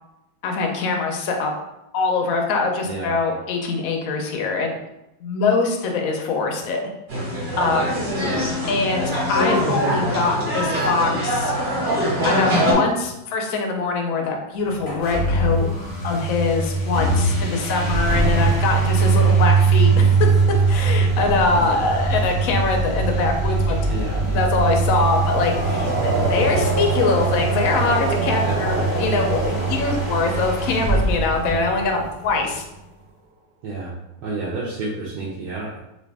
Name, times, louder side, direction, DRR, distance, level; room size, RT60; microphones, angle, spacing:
voice 1, 0.4-1.5 1.9-4.8 5.2-6.8 7.6-8.1 8.7-11.5 12.2-15.7 16.0-20.3 20.7-23.9 24.2-32.6, left 3 dB, 70° left, 2 dB, 0.8 m, -23 dB
voice 2, 2.8-3.2 8.2-8.5 21.5-21.9 23.9-24.3 25.8-26.4 28.4-28.9 29.6-30.0 33.6-33.9 34.2-35.8, right 3 dB, 65° right, -6 dB, 1.1 m, -31 dB
sound 1, 7.1-12.7, equal, 30° right, 1.3 m, -23 dB
sound 2, 14.8-32.3, right 4 dB, 40° left, 0.7 m, -21 dB
sound 3, 21.1-32.0, right 2 dB, 50° right, 0.7 m, -29 dB
3.2 x 2.6 x 3.4 m, 0.90 s
omnidirectional pair, 2.1 m